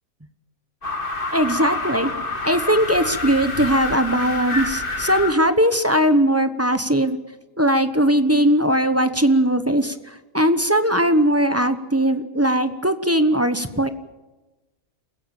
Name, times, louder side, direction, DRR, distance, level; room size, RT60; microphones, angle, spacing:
sound 1, 0.8-5.3, left 2 dB, 35° left, 2.2 m, -27 dB
voice 1, 1.3-2.1 2.4-7.2 7.6-13.9, equal, 10° right, 9 dB, 0.9 m, -19 dB
29.0 x 16.0 x 7.2 m, 1.1 s
omnidirectional pair, 1.6 m